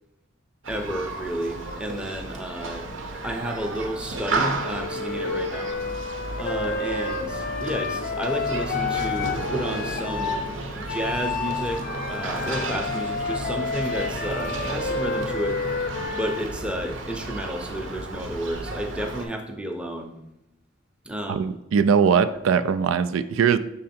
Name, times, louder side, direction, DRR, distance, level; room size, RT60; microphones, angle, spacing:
Human group actions, 0.6-19.3, right 2 dB, 75° right, 0.8 m, -33 dB
voice 1, 0.7-2.8 3.2-5.7 6.4-10.4 10.7-15.6 16.1-20.1 21.0-21.4, right 1 dB, 5° right, 3 dB, 0.6 m, -31 dB
Wind instrument woodwind instrument, 4.6-10.5 10.9-16.5, left 5 dB, 45° left, 0.4 m, -30 dB
sound 1, 8.7-17.7, left 1 dB, 35° right, 0.8 m, -40 dB
voice 2, 21.3-23.6, right 6 dB, 90° right, 13 dB, 0.3 m, -21 dB
6.4 x 3.8 x 4.2 m, 0.89 s
head